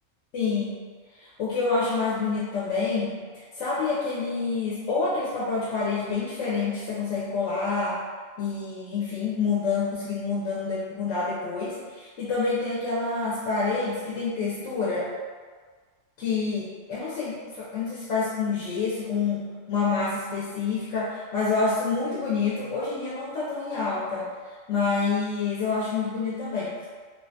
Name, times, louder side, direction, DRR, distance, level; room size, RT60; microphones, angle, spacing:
voice 1, 0.3-0.8 1.2-8.0 8.4-15.1 16.2-24.3 24.7-26.7, left 4 dB, 75° left, -7 dB, 0.9 m, -27 dB
2.3 x 2.2 x 2.6 m, 1.5 s
omnidirectional pair, 1.3 m